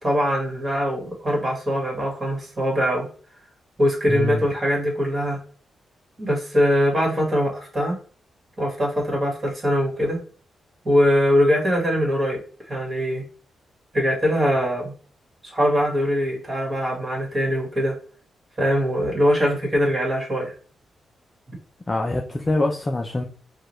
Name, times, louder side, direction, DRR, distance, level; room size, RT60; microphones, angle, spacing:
voice 1, 0.0-3.1 3.8-5.4 6.2-8.0 8.6-10.2 10.8-12.4 12.7-13.2 13.9-14.9 15.5-17.9 18.6-20.5, equal, 25° right, -1 dB, 1.6 m, -22 dB
voice 2, 4.1-4.4 21.9-23.2, left 2 dB, 20° left, 2 dB, 0.4 m, -24 dB
4.8 x 2.3 x 3.0 m, 0.41 s
cardioid pair, 120°, 0 cm